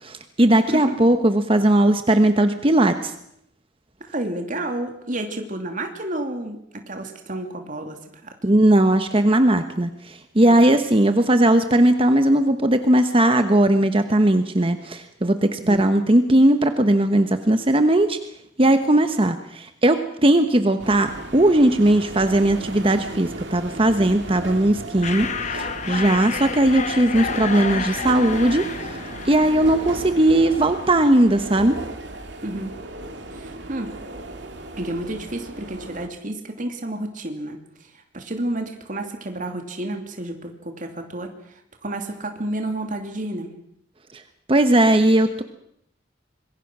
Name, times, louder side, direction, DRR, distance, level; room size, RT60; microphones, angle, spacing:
voice 1, 0.0-3.1 8.4-18.2 18.6-29.0 29.2-31.8 44.5-45.4, right 1 dB, 30° right, 8 dB, 1.1 m, -18 dB
voice 2, 4.0-8.3 10.5-10.8 15.6-15.9 32.4-32.7 33.3-33.9 34.8-37.6 38.1-41.3 41.8-43.5, right 1 dB, 45° right, 4 dB, 2.7 m, -30 dB
sound 1, 20.8-36.1, right 1 dB, 70° right, 2.8 m, -35 dB
sound 2, 25.0-30.5, left 5 dB, 40° left, 1.4 m, -30 dB
26.0 x 22.0 x 6.1 m, 0.74 s
head